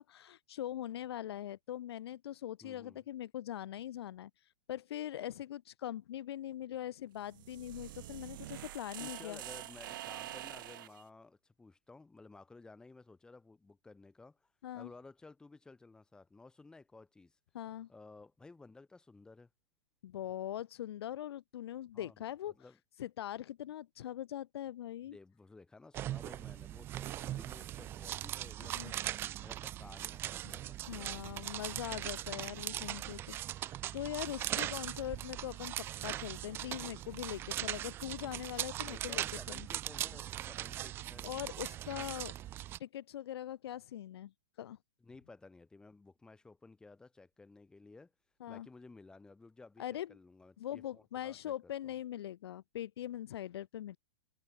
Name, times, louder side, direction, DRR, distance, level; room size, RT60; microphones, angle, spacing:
voice 1, 0.0-4.3 4.7-9.4 14.6-14.9 17.5-17.9 20.0-22.5 23.0-25.2 28.6-28.9 30.4-30.6 30.9-39.7 41.2-42.3 42.8-44.3 44.6-44.8 48.4-48.7 49.8-50.2 50.6-54.0, left 12 dB, 55° left, 1.8 m, -42 dB
voice 2, 2.6-3.0 9.0-17.4 17.9-19.5 21.9-22.2 22.5-22.8 25.0-29.0 29.4-31.5 32.6-32.8 33.9-34.0 38.8-41.4 45.0-48.1 48.5-51.5 51.8-51.9, left 3 dB, 5° left, 7.2 m, -56 dB
sound 1, 7.2-11.0, right 15 dB, 45° right, 0.8 m, -46 dB
sound 2, 25.9-42.8, right 13 dB, 15° right, 0.7 m, -40 dB
hypercardioid pair, 170°, 15 cm